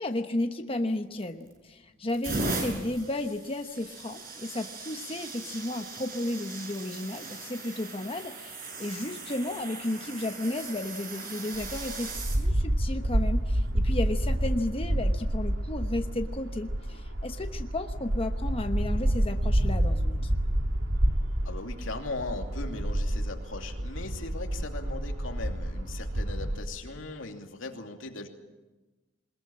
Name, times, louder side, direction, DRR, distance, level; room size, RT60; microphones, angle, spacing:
voice 1, 0.0-20.3, left 1 dB, 30° left, 6 dB, 1.1 m, -33 dB
sound 1, 1.2-1.6 2.1-12.4 13.3-13.5 15.0-15.2, right 3 dB, 50° right, 6.5 m, -38 dB
sound 2, 11.5-26.6, right 1 dB, 85° right, 2.1 m, -29 dB
voice 2, 21.4-28.3, left 3 dB, 85° left, 4 dB, 2.7 m, -39 dB
22.0 x 21.0 x 8.7 m, 1.2 s
head